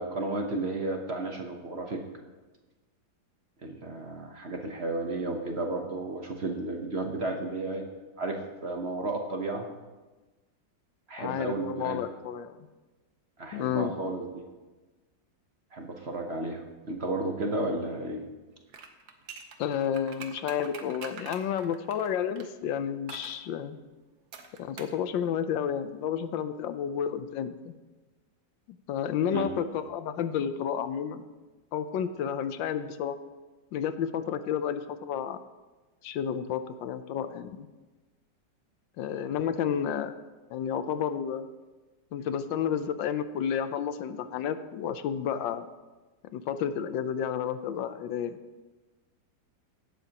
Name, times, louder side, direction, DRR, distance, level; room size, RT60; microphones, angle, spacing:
voice 1, 0.0-2.0 3.6-7.8 8.2-9.7 11.1-12.0 13.4-14.4 15.7-18.2 29.3-29.5, right 2 dB, 45° right, 3 dB, 1.0 m, -33 dB
voice 2, 11.2-12.5 13.5-13.9 19.6-23.8 24.6-27.7 28.9-31.2 31.7-33.2 33.7-35.4 36.0-37.7 39.0-40.1 40.5-41.4 42.1-45.6 46.3-48.4, left 8 dB, 85° left, 11 dB, 1.4 m, -31 dB
sound 1, 18.7-22.5 23.1-23.4 24.3-25.0 25.3-25.4, right 6 dB, 60° right, 1.4 m, -45 dB
16.0 x 12.0 x 2.9 m, 1.2 s
omnidirectional pair, 2.0 m